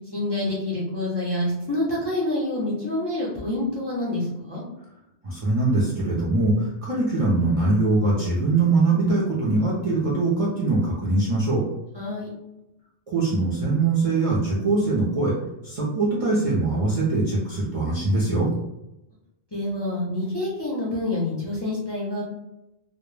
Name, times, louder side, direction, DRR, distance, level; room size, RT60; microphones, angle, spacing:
voice 1, 0.1-4.6 11.9-12.3 19.5-22.2, left 1 dB, 35° left, -6 dB, 0.5 m, -27 dB
voice 2, 5.2-11.6 13.1-15.3 15.6-18.5, right 3 dB, 50° right, -7 dB, 0.4 m, -22 dB
2.0 x 2.0 x 3.1 m, 0.91 s
omnidirectional pair, 1.1 m